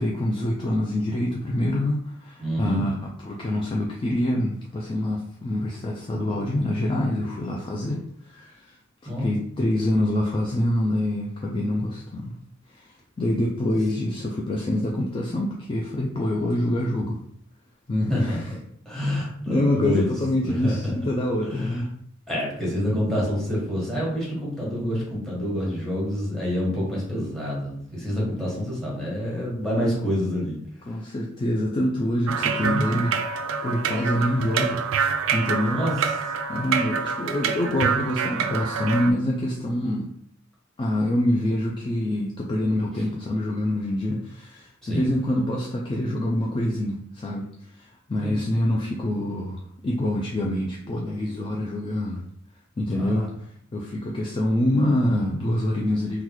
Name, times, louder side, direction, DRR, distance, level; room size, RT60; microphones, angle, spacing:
voice 1, 0.0-8.8 9.2-12.3 12.7-17.2 17.9-18.5 19.5-21.9 28.1-28.6 30.9-33.2 33.6-34.8 35.3-35.8 36.5-40.1 40.8-52.2 52.8-53.3 53.7-56.2, left 1 dB, 25° left, -1 dB, 0.3 m, -26 dB
voice 2, 2.4-2.9 9.1-9.3 18.1-18.4 18.8-20.1 20.4-20.9 21.5-21.7 22.3-30.6 35.7-35.9 44.8-45.2 48.2-48.3 52.9-53.2, equal, 5° left, -5 dB, 1.3 m, -27 dB
sound 1, 32.3-39.1, right 6 dB, 80° right, 0.3 m, -26 dB
3.8 x 2.3 x 3.0 m, 0.67 s
head